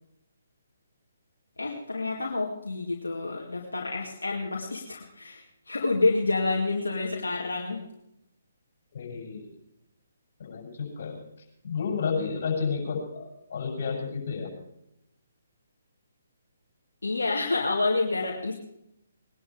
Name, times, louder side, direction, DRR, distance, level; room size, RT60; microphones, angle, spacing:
voice 1, 1.6-7.8 17.0-18.5, left 3 dB, 85° left, -1 dB, 2.4 m, -28 dB
voice 2, 8.9-9.5 10.4-11.2 11.6-14.5, left 5 dB, 55° left, 1 dB, 7.3 m, -31 dB
21.0 x 11.0 x 5.1 m, 0.80 s
figure-of-eight pair, 140°, 0 cm